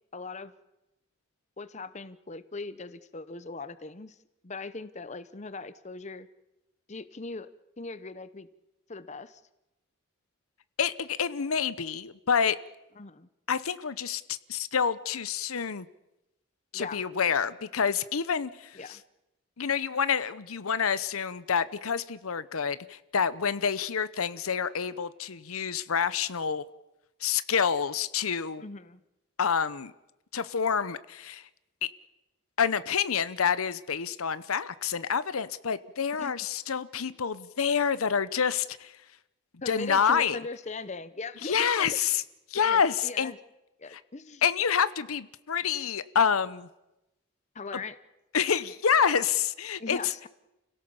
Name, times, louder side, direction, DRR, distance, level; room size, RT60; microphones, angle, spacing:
voice 1, 0.1-0.5 1.6-4.2 4.4-6.3 6.9-7.5 7.8-8.5 8.9-9.4 13.0-13.3 16.7-17.1 18.7-19.0 28.6-29.0 36.2-36.3 39.6-42.0 42.6-43.4 43.8-44.4 47.5-48.0 49.8-50.3, left 3 dB, 35° left, 14 dB, 0.8 m, -39 dB
voice 2, 10.8-12.6 13.5-15.9 16.7-19.0 19.6-26.6 27.2-28.6 29.4-29.9 30.3-31.4 32.6-38.9 39.7-40.4 41.4-42.2 42.5-43.3 43.9-44.0 44.4-46.7 47.7-47.8 48.3-50.0, left 7 dB, 85° left, 15 dB, 0.8 m, -28 dB
29.5 x 17.0 x 7.1 m, 0.96 s
head